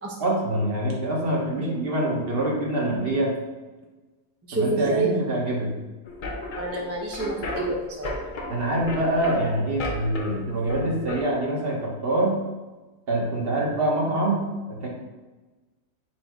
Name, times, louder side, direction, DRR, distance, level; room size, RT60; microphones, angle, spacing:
voice 1, 0.2-3.4 4.5-5.7 8.5-12.4 13.1-14.9, right 1 dB, 45° right, -2 dB, 1.1 m, -25 dB
voice 2, 4.5-5.1 6.6-8.1, right 3 dB, 20° right, -2 dB, 0.4 m, -28 dB
sound 1, 6.1-11.2, left 2 dB, 50° left, 0.6 m, -34 dB
4.4 x 2.6 x 4.6 m, 1.2 s
omnidirectional pair, 1.5 m